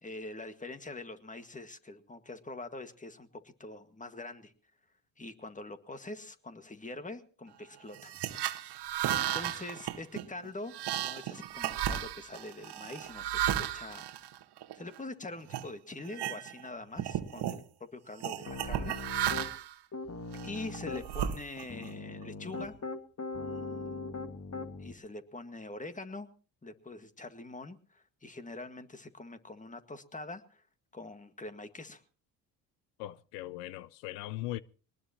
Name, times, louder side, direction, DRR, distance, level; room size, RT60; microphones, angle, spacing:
voice 1, 0.0-4.5 5.2-8.2 9.1-10.7 11.0-14.1 14.7-19.4 20.4-22.8 23.5-24.0 24.8-26.3 26.6-30.6 30.9-32.0, left 2 dB, 15° left, 1.8 m, -44 dB
sound 1, 7.9-15.0 15.5-15.7 16.1-16.7 16.9-17.6 18.2-19.7 20.3-21.9, right 11 dB, 55° right, 1.6 m, -34 dB
Piano, 18.5-19.5 19.9-21.0 21.7-24.9, left 3 dB, 30° left, 2.0 m, -40 dB
voice 2, 33.0-34.6, left 16 dB, 80° left, 0.7 m, -39 dB
22.0 x 19.5 x 3.0 m
hypercardioid pair, 65°, 47 cm